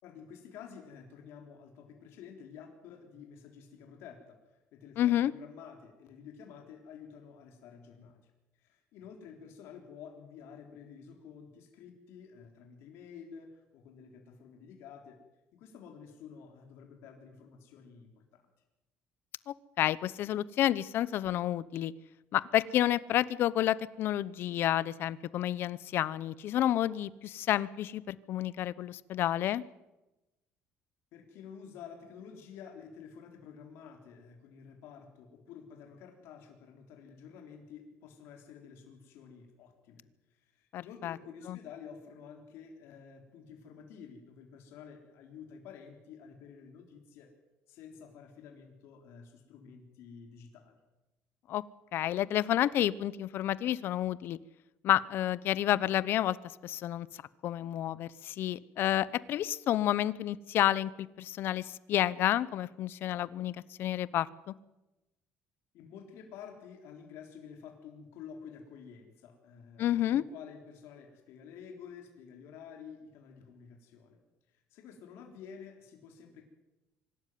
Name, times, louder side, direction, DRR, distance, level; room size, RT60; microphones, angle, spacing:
voice 1, 0.0-15.2 15.5-18.4 31.1-47.3 47.7-50.8 65.7-74.2 74.5-76.4, left 7 dB, 75° left, 3 dB, 3.8 m, -50 dB
voice 2, 5.0-5.3 19.5-21.9 22.3-29.6 40.7-41.2 41.5-41.6 51.5-51.6 51.9-54.4 54.8-56.4 56.6-57.1 57.4-64.5 69.8-70.2, left 12 dB, 60° left, 19 dB, 0.8 m, -30 dB
24.5 x 12.5 x 9.5 m, 1.0 s
cardioid pair, 135°, 4 cm